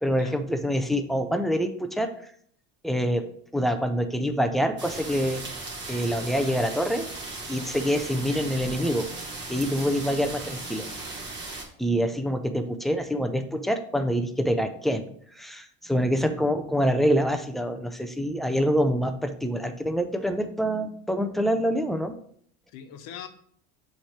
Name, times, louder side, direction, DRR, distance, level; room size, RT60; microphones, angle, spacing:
voice 1, 0.0-2.1 2.8-3.2 3.5-5.4 5.9-7.1 7.5-9.1 9.5-10.9 11.8-15.0 15.4-22.1, equal, ahead, 7 dB, 0.3 m, -26 dB
sound 1, 4.8-11.6, right 2 dB, 25° right, 1.7 m, -37 dB
voice 2, 16.1-16.4 22.7-23.3, left 8 dB, 65° left, 7 dB, 1.0 m, -43 dB
7.2 x 3.3 x 4.4 m, 0.62 s
supercardioid pair, 120°, 39 cm